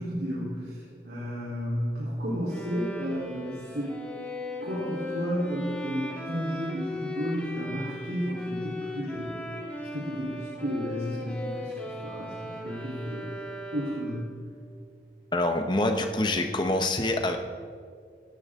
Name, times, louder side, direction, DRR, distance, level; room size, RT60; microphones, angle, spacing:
voice 1, 0.0-4.0 4.6-9.5 9.8-13.3 13.7-14.3, equal, 70° right, -7 dB, 3.8 m, -32 dB
Bowed string instrument, 2.5-14.3, left 1 dB, 10° left, 2.0 m, -38 dB
voice 2, 15.3-17.4, left 1 dB, 25° left, 5 dB, 1.0 m, -26 dB
18.0 x 17.0 x 3.8 m, 2.1 s
head